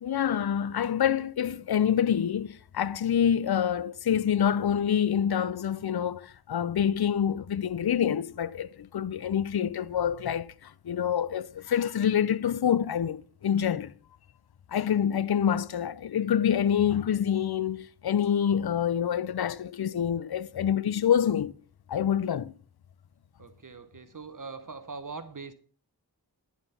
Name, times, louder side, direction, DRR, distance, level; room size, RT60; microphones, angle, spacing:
voice 1, 0.0-13.9 14.7-21.5 21.9-22.5, left 9 dB, 65° left, 0.6 m, -26 dB
voice 2, 23.4-25.5, right 4 dB, 50° right, 0.9 m, -41 dB
11.0 x 7.2 x 5.6 m
wide cardioid pair, 65°, 41 cm